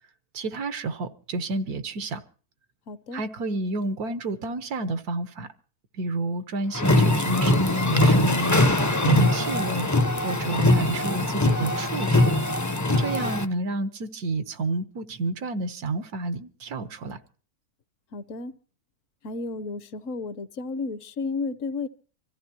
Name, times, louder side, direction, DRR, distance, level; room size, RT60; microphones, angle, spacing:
voice 1, 0.3-2.2 3.1-5.5 5.9-9.9 10.2-12.3 13.0-17.2, right 2 dB, 85° right, 1.6 m, -30 dB
voice 2, 2.9-3.2 18.1-18.5 19.2-21.9, left 3 dB, 65° left, 1.2 m, -32 dB
sound 1, 6.7-13.4, left 1 dB, 20° left, 0.4 m, -22 dB
25.5 x 14.5 x 2.9 m
omnidirectional pair, 1.6 m